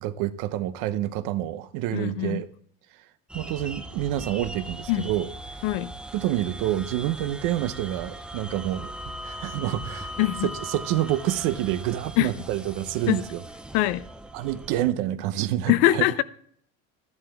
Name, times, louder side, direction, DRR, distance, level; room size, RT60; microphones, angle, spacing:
voice 1, 0.0-2.5 3.3-5.3 6.1-8.9 9.2-10.1 10.4-13.4 14.3-16.0, right 13 dB, 70° right, 0.9 m, -28 dB
voice 2, 1.9-2.4 4.9-5.1 5.6-5.9 10.2-10.5 12.2-12.3 13.1-13.2 13.7-14.0 15.7-16.2, left 16 dB, 75° left, 0.7 m, -23 dB
sound 1, 3.3-14.9, right 1 dB, 5° right, 0.5 m, -39 dB
13.0 x 11.0 x 3.5 m
cardioid pair, 150°, 32 cm